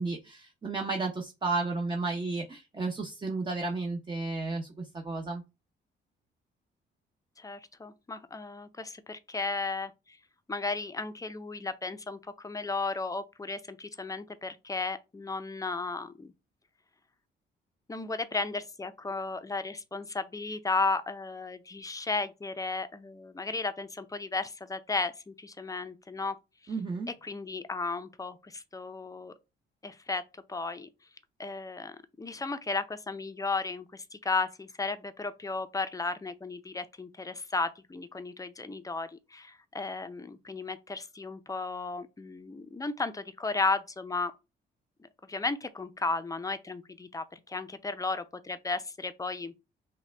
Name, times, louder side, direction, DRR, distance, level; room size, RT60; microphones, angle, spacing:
voice 1, 0.0-5.4 26.7-27.1, right 3 dB, 25° right, 0.7 m, -33 dB
voice 2, 7.4-10.2 10.5-16.3 17.9-26.3 26.6-26.7 27.2-29.3 29.8-30.2 30.5-30.9 31.4-44.3 45.2-49.5, left 3 dB, 15° left, 0.5 m, -34 dB
5.5 x 2.3 x 3.3 m
cardioid pair, 90°, 20 cm